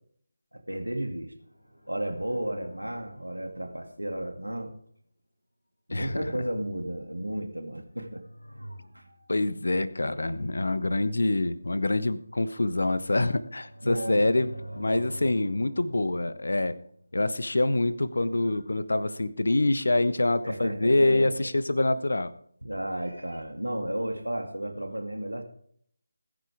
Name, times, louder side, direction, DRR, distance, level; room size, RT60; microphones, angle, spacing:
voice 1, 0.5-1.3 1.9-4.7 5.9-8.2 8.9-9.0 13.8-14.3 20.4-21.5 22.6-25.4, right 1 dB, 80° right, 5 dB, 2.3 m, -33 dB
sound 1, 1.4-4.5 7.8-9.5 11.9-17.9 18.2-18.3, right 1 dB, 80° left, 4.2 m, -47 dB
voice 2, 5.9-6.2 9.3-14.5 14.7-16.8 17.1-22.3, left 2 dB, 60° left, 14 dB, 1.1 m, -25 dB
20.5 x 10.5 x 3.6 m, 0.63 s
figure-of-eight pair, 160°, 0 cm